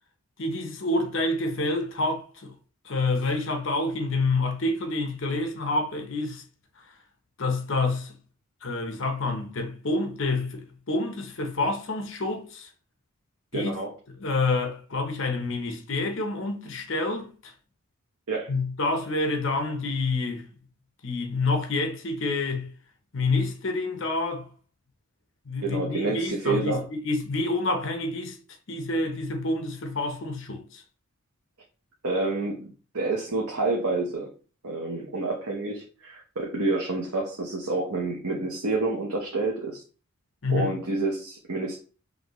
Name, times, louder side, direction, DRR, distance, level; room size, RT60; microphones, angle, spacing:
voice 1, 0.4-2.5 2.8-6.4 7.4-8.1 8.6-12.7 13.5-13.7 14.1-17.5 18.5-20.5 21.0-22.7 23.1-24.5 25.5-28.4 28.7-30.8 40.4-40.7, left 2 dB, 60° left, 0.8 m, -28 dB
voice 2, 13.5-13.9 18.3-18.5 25.6-26.8 32.0-34.3 34.6-39.8 40.5-41.8, right 3 dB, 90° right, 0.9 m, -28 dB
5.2 x 2.7 x 3.0 m
head